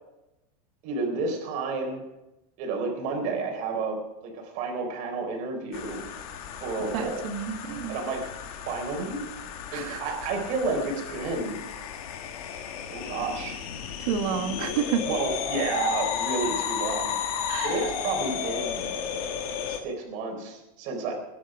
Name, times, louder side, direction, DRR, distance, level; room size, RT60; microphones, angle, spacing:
voice 1, 0.8-2.0 2.6-4.0 4.2-6.0 6.6-7.3 7.9-8.3 8.7-9.2 9.7-11.6 12.9-13.6 15.1-17.1 17.6-18.9 19.7-21.1, right 3 dB, 45° right, 2 dB, 4.1 m, -30 dB
sound 1, 5.7-19.8, left 8 dB, 70° left, 2.0 m, -33 dB
voice 2, 6.9-8.0 9.7-10.3 14.0-15.0 17.5-17.8, right 7 dB, 70° right, 6 dB, 1.8 m, -30 dB
20.5 x 10.0 x 5.0 m, 0.95 s
supercardioid pair, 165°, 19 cm